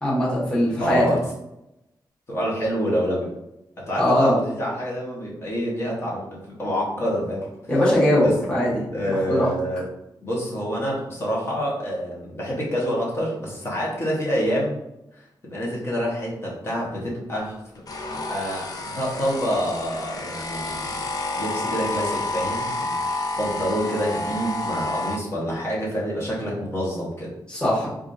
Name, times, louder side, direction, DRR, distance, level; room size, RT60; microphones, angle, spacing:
voice 1, 0.0-1.0 4.0-4.4 7.7-8.8 9.2-9.5 27.5-27.9, left 1 dB, 10° left, -8 dB, 1.3 m, -20 dB
voice 2, 0.8-1.2 2.3-3.3 3.8-7.5 8.2-8.3 8.9-9.8 10.2-14.8 15.5-17.6 18.3-20.8 21.3-27.3, equal, 30° left, -5 dB, 1.1 m, -27 dB
sound 1, 17.9-25.2, left 2 dB, 50° left, 0.5 m, -29 dB
4.8 x 2.4 x 2.6 m, 0.88 s
wide cardioid pair, 150°, 8 cm